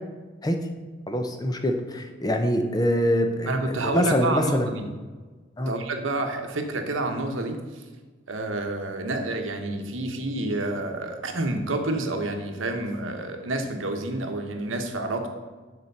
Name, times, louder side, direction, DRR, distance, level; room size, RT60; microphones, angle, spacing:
voice 1, 1.1-4.7 5.6-5.7, equal, 20° left, 5 dB, 0.6 m, -24 dB
voice 2, 3.5-4.8 5.7-7.6 8.3-15.3, right 2 dB, 80° right, 5 dB, 1.0 m, -29 dB
6.8 x 4.4 x 6.7 m, 1.3 s
head